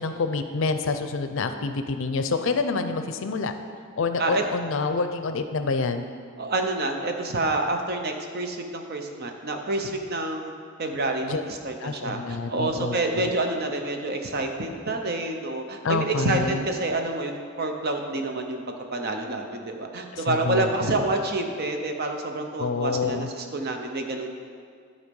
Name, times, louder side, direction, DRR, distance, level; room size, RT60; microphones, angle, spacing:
voice 1, 0.0-3.5 4.0-6.1 11.2-11.4 11.8-13.3 15.8-16.6 20.1-21.0 22.6-23.3, left 4 dB, 65° left, 8 dB, 0.5 m, -27 dB
voice 2, 6.4-10.5 10.8-18.6 18.9-24.3, right 2 dB, 50° right, 4 dB, 0.8 m, -28 dB
11.5 x 4.2 x 5.3 m, 2.1 s
head